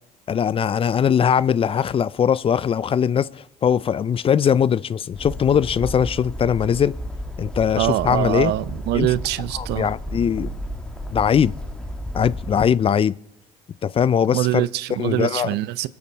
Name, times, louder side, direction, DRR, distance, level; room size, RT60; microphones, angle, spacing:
voice 1, 0.3-6.9 7.4-8.5 8.9-9.1 9.6-10.5 11.1-11.5 12.2-13.1 13.8-14.7 15.0-15.5, left 8 dB, 35° left, 0.4 m, -20 dB
Bird, 5.1-12.7, equal, 5° left, 1.4 m, -33 dB
voice 2, 7.8-9.9 14.3-15.9, right 15 dB, 80° right, 0.6 m, -24 dB
23.0 x 8.7 x 4.0 m
cardioid pair, 110°, 17 cm